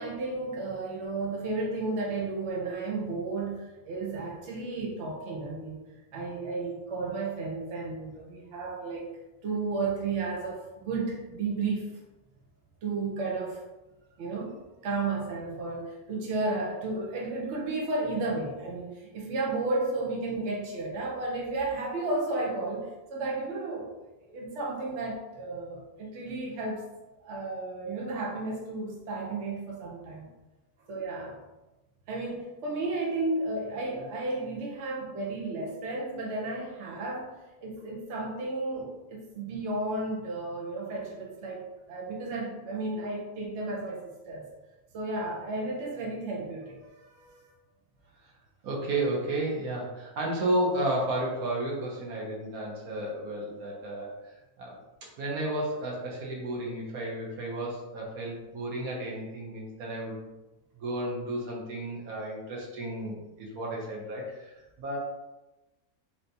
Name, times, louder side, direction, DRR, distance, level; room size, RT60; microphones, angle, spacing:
voice 1, 0.0-5.8 6.1-9.1 9.4-11.9 12.8-13.6 14.2-14.5 14.8-23.9 24.3-26.8 27.2-30.3 30.9-31.4 32.1-37.3 37.6-44.0 44.3-44.4 44.9-47.5, right 3 dB, 55° right, -2 dB, 0.9 m, -33 dB
voice 2, 48.6-54.2 54.6-60.3 60.7-65.0, right 1 dB, 75° right, -2 dB, 1.2 m, -32 dB
3.3 x 2.7 x 2.6 m, 1.0 s
omnidirectional pair, 1.5 m